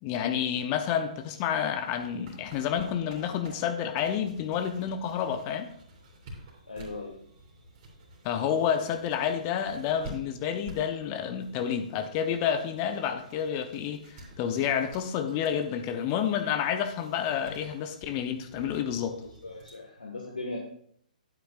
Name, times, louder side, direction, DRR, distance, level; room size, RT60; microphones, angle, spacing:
voice 1, 0.0-5.7 8.2-19.2, left 8 dB, 30° left, 7 dB, 0.8 m, -29 dB
sound 1, 0.9-19.7, right 1 dB, 35° right, 3.5 m, -51 dB
voice 2, 6.7-7.1 19.4-20.6, left 2 dB, 75° left, -1 dB, 1.6 m, -38 dB
11.5 x 9.2 x 2.5 m, 0.65 s
figure-of-eight pair, 125°, 5 cm